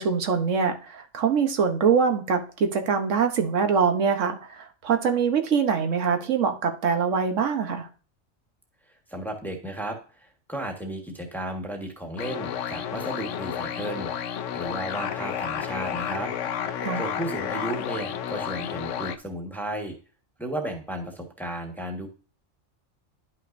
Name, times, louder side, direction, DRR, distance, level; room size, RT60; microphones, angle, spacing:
voice 1, 0.0-7.9 16.8-17.0, right 6 dB, 90° right, 6 dB, 1.3 m, -24 dB
voice 2, 9.1-16.3 17.0-19.9 20.4-22.1, right 1 dB, ahead, 2 dB, 1.3 m, -34 dB
sound 1, 12.2-19.2, left 9 dB, 80° left, 1.0 m, -31 dB
11.0 x 5.8 x 2.6 m, 0.37 s
omnidirectional pair, 1.2 m